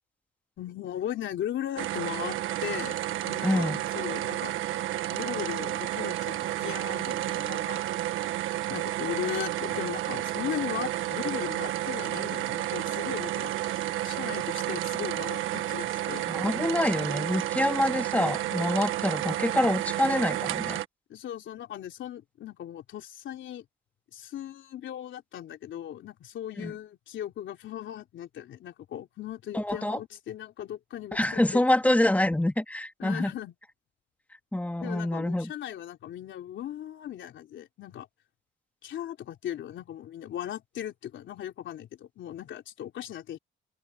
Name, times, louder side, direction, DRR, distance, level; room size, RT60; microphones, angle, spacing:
voice 1, 0.6-3.0 3.2-4.6 5.1-7.8 8.7-16.3 21.1-23.6 24.1-31.7 33.0-33.5 34.8-38.1 38.8-43.4, left 11 dB, 75° left, 3.4 m, -38 dB
sound 1, 1.8-20.9, right 14 dB, 90° right, 1.4 m, -31 dB
voice 2, 3.4-3.8 16.3-20.8 26.6-26.7 29.5-30.0 31.1-33.3 34.5-35.5, left 1 dB, 5° left, 2.4 m, -26 dB
open air
cardioid pair, 90°, 20 cm